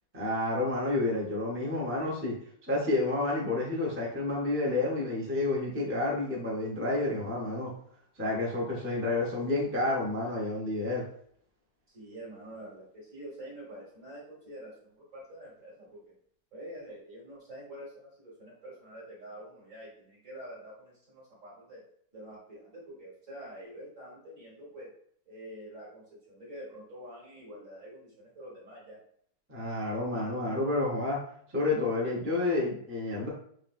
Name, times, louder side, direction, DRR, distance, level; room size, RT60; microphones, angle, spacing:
voice 1, 0.1-2.3 2.7-7.7 8.2-11.0 29.5-31.2 31.5-33.3, left 2 dB, 10° right, -4 dB, 0.6 m, -30 dB
voice 2, 11.9-16.1 16.5-21.8 22.1-24.9 25.3-29.0, right 1 dB, 40° right, -6 dB, 2.0 m, -46 dB
6.1 x 2.5 x 2.6 m, 0.63 s
omnidirectional pair, 2.0 m